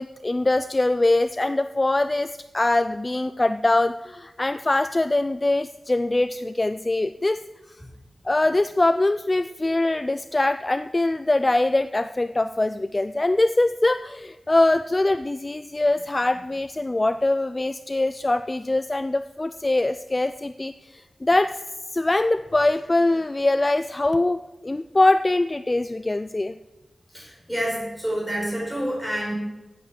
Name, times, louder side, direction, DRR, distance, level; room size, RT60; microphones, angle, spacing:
voice 1, 0.0-7.4 8.2-21.6 21.9-26.5, left 2 dB, 25° left, 11 dB, 0.3 m, -23 dB
voice 2, 27.1-29.3, equal, 5° right, -3 dB, 5.3 m, -28 dB
9.7 x 8.2 x 7.4 m, 1.1 s
wide cardioid pair, 120°, 0 cm